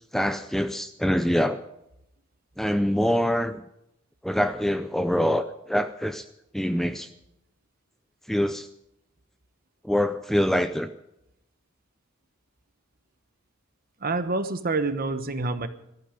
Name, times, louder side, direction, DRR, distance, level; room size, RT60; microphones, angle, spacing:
voice 1, 0.1-1.6 2.6-3.6 4.2-6.3 6.5-7.1 8.3-8.7 9.8-10.9 15.6-15.7, equal, ahead, 10 dB, 0.4 m, -25 dB
voice 2, 14.0-15.7, right 3 dB, 45° right, 10 dB, 1.1 m, -27 dB
17.5 x 13.5 x 5.1 m, 0.82 s
head